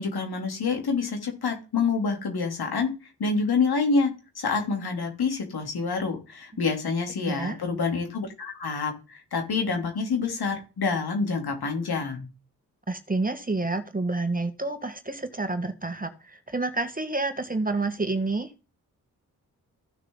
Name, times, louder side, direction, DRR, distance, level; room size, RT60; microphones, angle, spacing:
voice 1, 0.0-2.9 3.2-4.1 4.4-12.3, left 4 dB, 70° left, 3 dB, 3.2 m, -27 dB
voice 2, 7.2-7.6 12.9-18.5, right 3 dB, 20° right, 9 dB, 1.7 m, -29 dB
15.0 x 6.5 x 3.9 m, 0.31 s
supercardioid pair, 40°, 39 cm